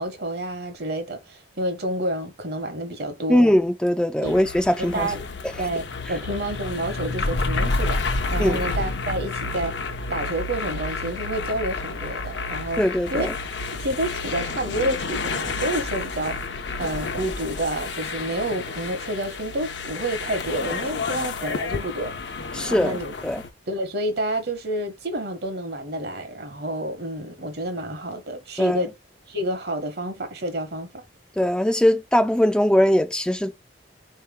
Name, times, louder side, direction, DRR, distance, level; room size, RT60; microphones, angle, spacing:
voice 1, 0.0-3.5 4.2-4.4 4.8-8.0 8.3-9.8 10.1-12.8 13.1-13.3 13.7-16.4 16.8-22.1 22.6-23.1 23.7-28.9 29.3-31.0, right 1 dB, 60° right, 1.0 m, -29 dB
voice 2, 3.3-5.1 8.4-8.6 12.8-13.3 22.5-23.4 28.6-28.8 31.4-33.5, left 1 dB, 5° left, 0.3 m, -21 dB
sound 1, 4.2-23.5, left 3 dB, 70° left, 0.7 m, -30 dB
4.2 x 2.9 x 3.5 m
head